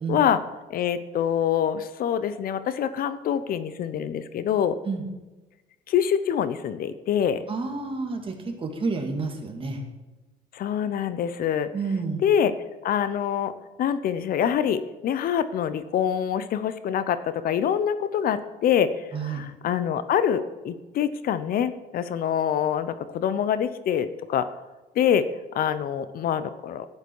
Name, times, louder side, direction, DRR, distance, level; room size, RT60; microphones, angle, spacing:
voice 1, 0.1-0.4 0.7-4.8 5.9-7.4 10.5-11.7 12.2-12.5 12.8-13.5 13.8-24.5 25.0-25.3 25.5-26.9, left 9 dB, 60° left, 13 dB, 0.7 m, -25 dB
voice 2, 7.5-9.8 11.7-12.2 19.1-19.5, right 4 dB, 30° right, 3 dB, 2.3 m, -29 dB
11.5 x 9.7 x 4.7 m, 1.1 s
cardioid pair, 110°, 17 cm